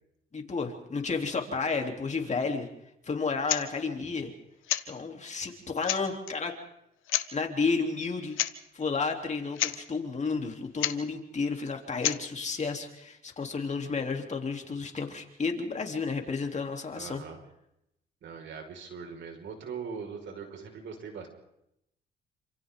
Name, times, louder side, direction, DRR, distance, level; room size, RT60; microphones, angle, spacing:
voice 1, 0.3-2.7 3.0-4.3 4.9-6.5 7.3-8.4 8.7-17.2, left 4 dB, 35° left, 3 dB, 3.4 m, -32 dB
sound 1, 3.4-3.7 4.6-4.9 5.5-5.6 5.8-6.3 7.1-7.3 8.3-8.5 8.8-8.9 9.3-9.4 9.5-9.8 10.8-11.0 12.0-12.2, left 13 dB, 85° left, 1.2 m, -29 dB
voice 2, 16.9-17.4 18.2-21.3, right 6 dB, 70° right, 3 dB, 5.4 m, -41 dB
28.0 x 27.0 x 3.9 m, 0.82 s
cardioid pair, 90°, 20 cm